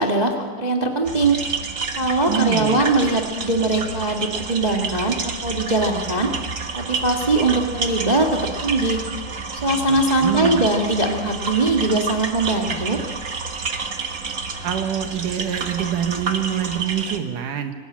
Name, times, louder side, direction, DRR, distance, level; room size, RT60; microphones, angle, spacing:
voice 1, 0.0-1.4 2.0-6.3 6.7-9.0 9.6-13.0, right 2 dB, 20° right, 1 dB, 1.3 m, -21 dB
sound 1, 1.0-17.2, right 4 dB, 40° right, 1.2 m, -29 dB
voice 2, 2.3-2.8 9.9-10.6 14.6-17.7, right 9 dB, 90° right, 6 dB, 3.1 m, -25 dB
26.0 x 19.5 x 8.7 m, 1.5 s
omnidirectional pair, 3.6 m